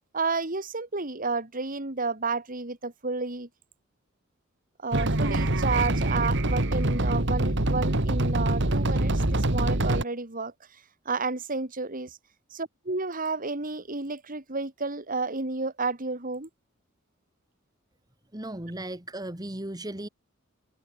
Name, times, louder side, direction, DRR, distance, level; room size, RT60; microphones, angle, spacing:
voice 1, 0.1-3.5 4.8-10.5 11.0-12.2 12.5-16.5, right 3 dB, 45° right, 3.1 m, -31 dB
sound 1, 4.9-10.0, right 1 dB, 65° right, 2.2 m, -25 dB
voice 2, 18.3-20.1, right 1 dB, 20° right, 2.0 m, -36 dB
head